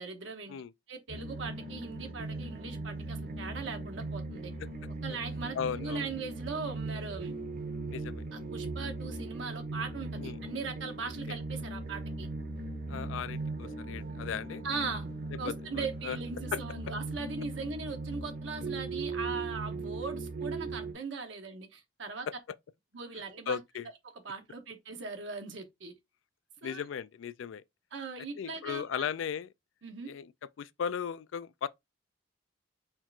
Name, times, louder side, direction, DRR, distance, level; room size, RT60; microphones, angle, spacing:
voice 1, 0.0-0.6 0.9-4.5 5.0-7.4 8.3-12.3 14.6-15.1 15.4-22.3 22.9-23.6 24.2-25.9 26.6-26.8 27.9-29.1 29.8-30.1, right 4 dB, 75° right, 0.9 m, -39 dB
sound 1, 1.1-20.9, right 2 dB, 50° right, 0.8 m, -39 dB
voice 2, 5.5-6.1 7.9-8.2 10.2-10.4 11.3-11.4 12.9-14.6 15.4-16.2 16.5-16.6 23.5-23.9 26.6-27.6 28.4-29.5 30.1-30.3 30.6-31.7, left 7 dB, 85° left, 0.3 m, -36 dB
4.4 x 2.4 x 4.4 m
head